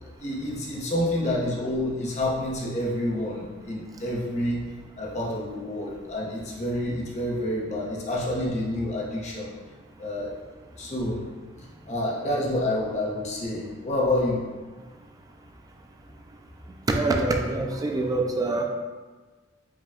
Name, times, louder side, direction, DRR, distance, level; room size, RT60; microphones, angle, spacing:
voice 1, 0.0-4.6 5.0-9.5 10.0-10.3 10.8-11.2 11.9-14.4, left 1 dB, 35° left, -4 dB, 0.7 m, -28 dB
voice 2, 16.9-18.6, right 2 dB, 20° right, 2 dB, 0.3 m, -25 dB
4.8 x 2.2 x 3.5 m, 1.4 s
head